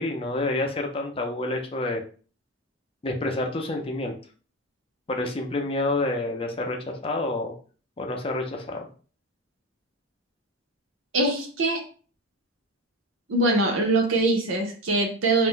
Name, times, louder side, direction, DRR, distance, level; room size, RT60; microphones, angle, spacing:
voice 1, 0.0-2.0 3.0-4.1 5.1-7.5 8.0-8.9, left 2 dB, 30° left, 2 dB, 0.4 m, -28 dB
voice 2, 11.1-11.8 13.3-15.5, right 2 dB, 85° right, 2 dB, 0.7 m, -23 dB
2.5 x 2.1 x 3.7 m, 0.40 s
head